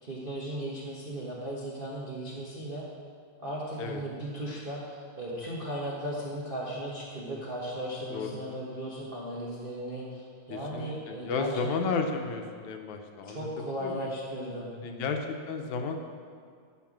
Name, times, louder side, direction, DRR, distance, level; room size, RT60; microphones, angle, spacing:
voice 1, 0.0-2.9 3.4-12.0 13.2-15.2, right 1 dB, 55° right, -6 dB, 0.6 m, -36 dB
voice 2, 10.5-13.5 13.8-14.1 14.7-16.0, left 4 dB, 75° left, 4 dB, 2.1 m, -33 dB
13.5 x 4.7 x 7.4 m, 2.1 s
omnidirectional pair, 3.5 m